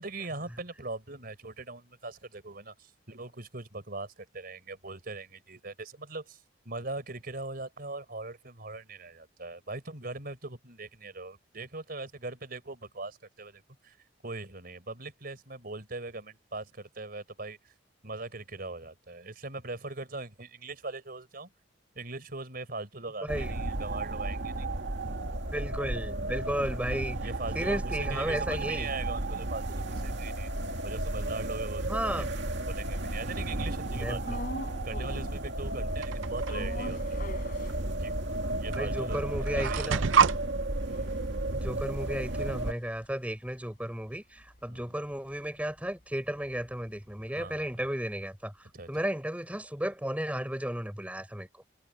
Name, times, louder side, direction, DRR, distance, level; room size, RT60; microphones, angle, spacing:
voice 1, 0.0-14.0 14.2-17.7 18.0-21.5 21.9-24.7 26.2-26.4 27.2-30.5 30.8-32.2 32.7-34.2 34.8-37.2 38.0-38.2 38.5-39.9 40.9-41.2 44.7-44.9 47.3-47.8 48.7-48.9, right 3 dB, 50° right, 4.5 m, -41 dB
voice 2, 23.2-23.5 25.5-27.3 27.5-28.9 31.8-32.3 33.9-34.3 38.7-40.0 41.5-51.5, right 1 dB, 10° right, 4.7 m, -34 dB
sound 1, 23.3-42.7, right 1 dB, 70° right, 2.3 m, -33 dB
sound 2, 34.2-35.4 35.7-38.3 38.7-38.8 39.0-43.5 43.8-47.9, left 1 dB, 50° left, 4.0 m, -45 dB
Creaky wooden door handle (open & close), 36.0-36.5 37.7-37.8 38.7-38.8 39.1-40.4, right 6 dB, 90° right, 0.6 m, -26 dB
head